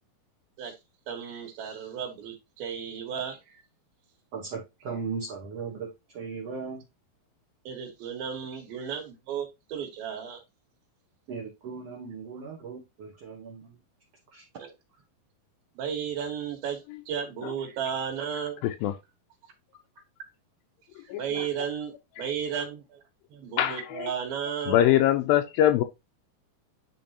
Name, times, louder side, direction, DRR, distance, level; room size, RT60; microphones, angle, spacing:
voice 1, 1.1-3.6 7.6-10.4 14.6-14.7 15.8-18.7 21.0-23.0 23.3-24.8, right 7 dB, 85° right, 3.2 m, -34 dB
voice 2, 4.3-6.8 11.3-13.8 14.3-14.5, right 5 dB, 60° right, 1.7 m, -37 dB
voice 3, 18.6-18.9 21.1-21.2 23.6-23.8 24.7-25.8, left 12 dB, 85° left, 2.3 m, -22 dB
10.5 x 3.9 x 2.9 m
omnidirectional pair, 4.2 m